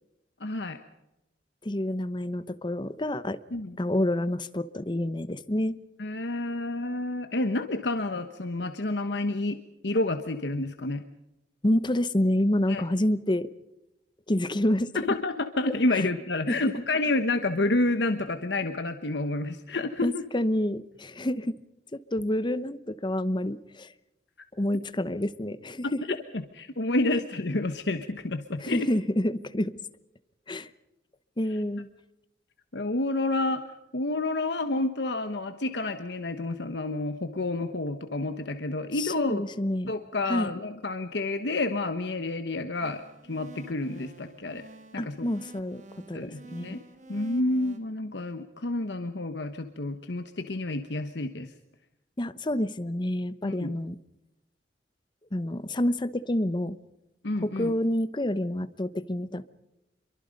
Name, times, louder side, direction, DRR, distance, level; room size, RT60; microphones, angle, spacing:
voice 1, 0.4-0.8 3.5-3.8 6.0-9.6 9.8-11.0 12.7-12.8 15.1-20.2 25.8-28.9 32.7-33.6 33.9-39.4 39.9-43.0 43.3-44.6 44.9-45.3 46.1-46.8 47.1-51.5 53.4-53.7 57.2-57.7, left 2 dB, 70° left, 8 dB, 1.2 m, -29 dB
voice 2, 1.6-3.4 3.8-5.8 11.6-13.5 14.3-14.9 15.9-16.0 16.5-16.7 20.0-21.6 21.9-23.9 24.6-26.0 28.6-29.7 30.5-30.7 31.4-31.9 39.0-39.9 40.3-40.5 45.0-45.8 46.1-46.8 52.2-54.0 55.3-56.8 57.4-59.5, left 1 dB, 25° left, 14 dB, 0.9 m, -28 dB
sound 1, 42.8-47.8, right 2 dB, 45° right, 2.4 m, -49 dB
27.0 x 23.5 x 5.3 m, 0.93 s
head